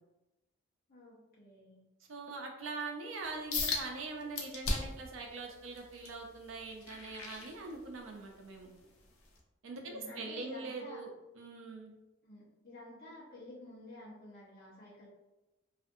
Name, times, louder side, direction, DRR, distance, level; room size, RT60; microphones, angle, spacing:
voice 1, 0.9-1.8 9.7-11.0 12.2-15.1, left 1 dB, 45° left, -8 dB, 0.8 m, -51 dB
voice 2, 2.1-8.7 9.6-11.1 11.4-12.0, right 3 dB, 75° right, 2 dB, 0.5 m, -42 dB
sound 1, 3.5-3.8 4.3-5.0 5.5-8.1 8.6-8.8 9.4-9.5, left 3 dB, 85° left, 0.5 m, -37 dB
2.5 x 2.5 x 2.5 m, 1.0 s
head